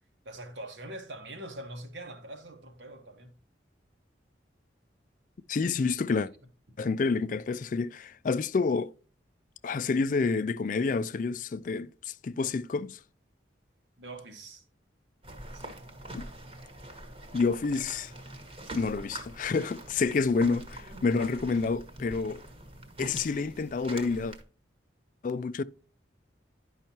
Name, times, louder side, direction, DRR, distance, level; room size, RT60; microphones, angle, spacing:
voice 1, 0.2-3.3 14.0-14.6 15.5-15.8, right 1 dB, 80° right, 1.5 m, -43 dB
voice 2, 5.5-6.3 6.8-8.9 9.6-13.0 16.1-16.3 17.3-18.1 18.7-22.4 23.0-24.4 25.2-25.6, left 4 dB, 45° left, 0.3 m, -28 dB
sound 1, 15.2-24.4, right 1 dB, 30° right, 1.2 m, -44 dB
10.5 x 5.5 x 2.8 m
head